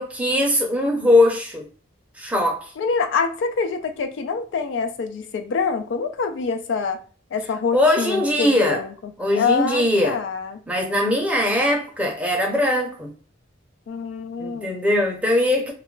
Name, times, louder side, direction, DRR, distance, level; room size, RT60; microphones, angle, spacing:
voice 1, 0.0-1.7 2.2-2.7 7.7-8.8 9.2-10.2 10.7-13.1 14.4-15.7, left 1 dB, 5° right, 0.6 m, -20 dB
voice 2, 2.8-7.0 7.3-10.6 13.9-14.8, left 5 dB, 65° left, 0.3 m, -26 dB
2.3 x 2.1 x 3.7 m
head